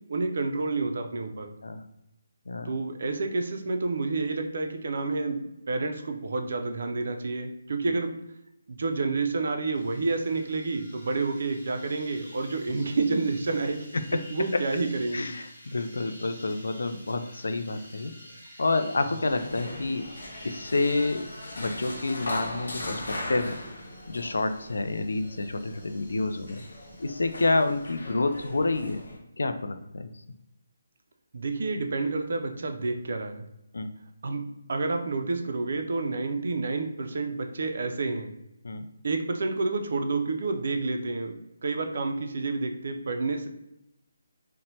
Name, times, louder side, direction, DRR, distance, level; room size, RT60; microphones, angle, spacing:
voice 1, 0.1-1.5 2.6-8.1 8.7-15.3 31.3-33.4 34.2-34.4 34.7-38.3 39.0-41.4 41.6-43.5, right 3 dB, 45° right, 5 dB, 0.3 m, -29 dB
sound 1, 9.7-28.0, equal, 20° left, 0.9 m, -51 dB
voice 2, 15.1-18.1 18.6-20.1 20.4-21.2 21.6-23.6 24.1-26.6 27.0-29.0 29.4-30.1 33.7-33.9 38.6-38.9, left 3 dB, 80° left, 8 dB, 0.3 m, -28 dB
sound 2, 19.3-29.2, left 1 dB, 65° left, 0.7 m, -39 dB
2.7 x 2.0 x 3.0 m, 0.85 s
hypercardioid pair, 180°, 0 cm